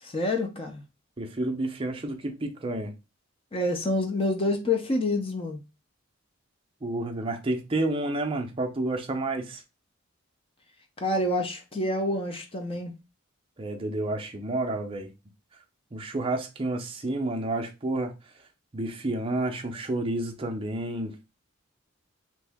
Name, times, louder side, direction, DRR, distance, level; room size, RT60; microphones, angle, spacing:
voice 1, 0.0-0.8 3.5-5.6 11.0-12.9, left 2 dB, 25° left, 0.5 m, -27 dB
voice 2, 1.2-2.9 6.8-9.6 13.6-15.1 15.9-18.1 18.7-21.1, right 2 dB, 25° right, 0.5 m, -30 dB
3.0 x 2.6 x 3.4 m
head